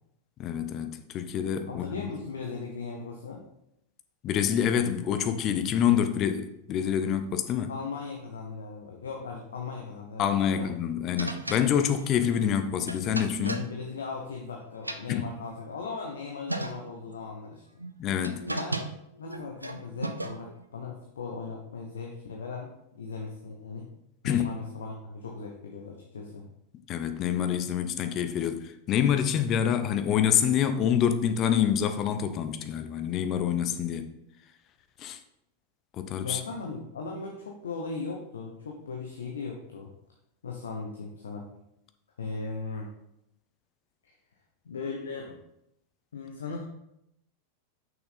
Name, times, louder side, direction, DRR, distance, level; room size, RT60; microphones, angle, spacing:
voice 1, 0.4-2.1 4.2-7.7 10.2-13.7 15.1-15.3 18.0-18.5 24.2-24.5 26.9-34.1 35.0-35.2 36.0-36.4, left 9 dB, 35° left, 0.7 m, -27 dB
voice 2, 1.7-3.4 7.7-10.7 13.4-17.6 18.5-18.8 19.2-23.9 24.2-26.5 36.2-39.9 40.4-41.5 42.2-42.9 44.0-44.1 44.6-45.4 46.1-46.6, left 4 dB, 65° left, 0.9 m, -38 dB
sound 1, 11.2-14.5 14.7-15.8 16.2-16.3 16.5-17.1 17.8-20.6, right 2 dB, 85° right, 0.5 m, -36 dB
6.2 x 6.1 x 4.1 m
figure-of-eight pair, 90°, 0 cm